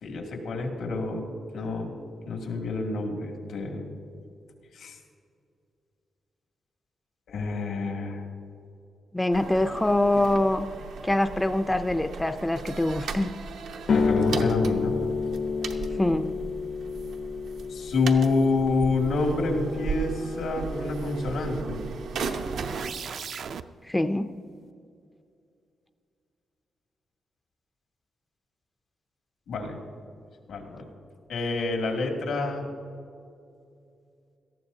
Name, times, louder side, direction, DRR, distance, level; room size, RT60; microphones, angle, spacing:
voice 1, 0.0-1.2 1.5-1.9 2.3-3.8 4.7-5.0 7.3-8.2 13.9-15.0 17.7-21.8 29.5-29.8 30.5-30.9 31.3-32.7, left 3 dB, 90° left, 1 dB, 2.3 m, -27 dB
voice 2, 9.1-10.7 11.0-13.3 16.0-16.3 23.9-24.3, left 1 dB, 10° left, 8 dB, 0.4 m, -24 dB
sound 1, 9.3-22.9, right 4 dB, 85° right, 0.8 m, -36 dB
sound 2, 13.9-21.0, left 5 dB, 55° left, 0.7 m, -30 dB
sound 3, 22.4-23.6, right 6 dB, 60° right, 0.4 m, -36 dB
18.5 x 14.0 x 2.7 m, 2.5 s
wide cardioid pair, 150°, 0 cm